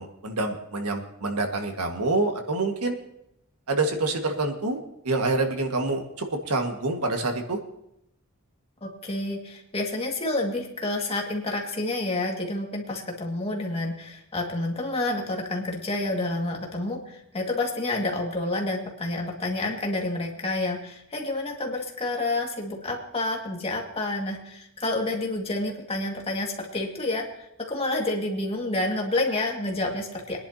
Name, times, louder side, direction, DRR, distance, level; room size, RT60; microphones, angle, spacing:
voice 1, 0.0-3.0 3.7-7.6, right 2 dB, 85° right, 4 dB, 1.7 m, -27 dB
voice 2, 8.8-30.4, left 2 dB, 25° left, 0 dB, 2.0 m, -29 dB
23.0 x 10.5 x 2.8 m, 0.80 s
head